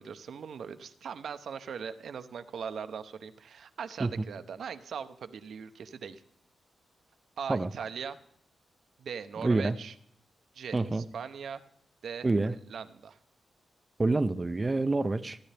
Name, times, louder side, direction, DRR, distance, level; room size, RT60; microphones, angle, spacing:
voice 1, 0.0-6.2 7.4-8.2 9.0-9.9 10.5-11.6 12.0-13.2, right 7 dB, 75° right, 9 dB, 0.7 m, -40 dB
voice 2, 9.4-9.7 10.7-11.0 12.2-12.5 14.0-15.4, right 3 dB, 25° right, 9 dB, 0.5 m, -27 dB
15.5 x 9.9 x 3.4 m, 0.65 s
cardioid pair, 80°, 0 cm